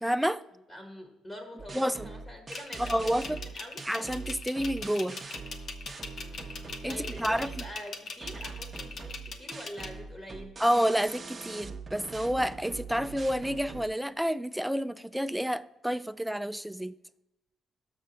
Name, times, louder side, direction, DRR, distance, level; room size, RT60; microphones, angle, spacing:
voice 1, 0.0-0.4 1.7-2.1 2.9-3.4 3.9-5.2 6.8-7.5 10.6-16.9, equal, 5° right, 0.3 m, -29 dB
voice 2, 0.7-3.1 3.4-3.8 6.2-6.6 6.9-10.6, left 1 dB, 20° left, 1.3 m, -45 dB
sound 1, 1.6-7.7 8.2-13.9, right 4 dB, 30° right, 0.7 m, -42 dB
sound 2, 2.5-9.9, left 4 dB, 55° left, 0.8 m, -40 dB
6.5 x 6.4 x 4.0 m
cardioid pair, 95°, 0 cm